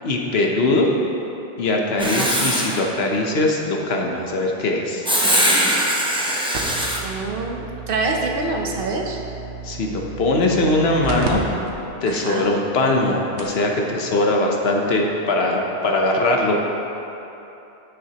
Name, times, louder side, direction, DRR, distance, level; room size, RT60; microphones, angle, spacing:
voice 1, 0.0-0.9 1.6-5.0 9.6-11.4 12.0-16.6, left 2 dB, 70° left, 0 dB, 1.1 m, -21 dB
Writing, 2.0-2.8 5.1-7.0, equal, 5° right, 0.7 m, -20 dB
voice 2, 2.0-2.3 7.0-9.2 12.1-12.5, right 3 dB, 60° right, 1 dB, 0.9 m, -26 dB
sound 1, 6.5-11.3 11.7-11.8 12.4-12.5 13.1-13.2 13.4-13.6 14.9-15.0, right 5 dB, 85° right, 1.2 m, -33 dB
9.5 x 7.6 x 2.9 m, 2.9 s
omnidirectional pair, 1.1 m